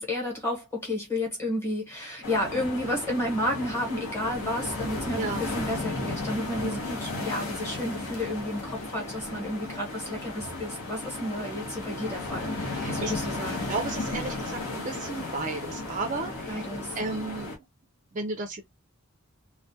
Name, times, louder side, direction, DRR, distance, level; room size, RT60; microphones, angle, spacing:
voice 1, 0.0-12.5 12.9-13.7 16.5-17.0, left 1 dB, 10° left, 1.0 m, -31 dB
sound 1, 2.2-17.6, left 2 dB, 75° left, 0.8 m, -34 dB
voice 2, 12.7-13.1 13.7-16.6 17.0-17.5 18.1-18.6, right 3 dB, 35° right, 0.4 m, -33 dB
2.3 x 2.1 x 2.6 m
head